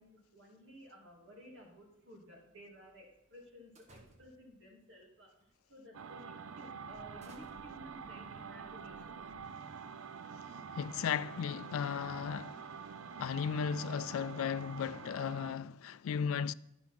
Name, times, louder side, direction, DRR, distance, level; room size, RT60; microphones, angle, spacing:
voice 1, 0.0-5.3 5.7-9.3, equal, 60° right, 3.0 m, -55 dB
sound 1, 3.8-4.6 5.4-5.6 6.1-6.2 6.9-9.8, right 1 dB, 30° right, 1.1 m, -62 dB
sound 2, 5.9-15.6, right 6 dB, 75° right, 0.5 m, -47 dB
voice 2, 10.8-12.9 13.2-16.5, left 7 dB, 80° left, 0.3 m, -36 dB
11.5 x 5.9 x 5.9 m
head